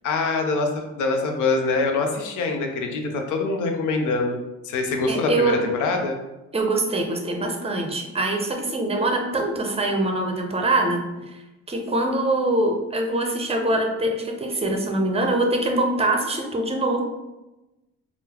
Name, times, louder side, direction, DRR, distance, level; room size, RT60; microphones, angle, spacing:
voice 1, 0.0-4.4 4.6-6.2, left 3 dB, 80° left, 4 dB, 0.6 m, -24 dB
voice 2, 5.1-5.7 6.5-11.4 11.7-17.0, right 2 dB, 20° right, 3 dB, 0.5 m, -23 dB
3.7 x 2.0 x 2.8 m, 1.0 s
cardioid pair, 90°, 30 cm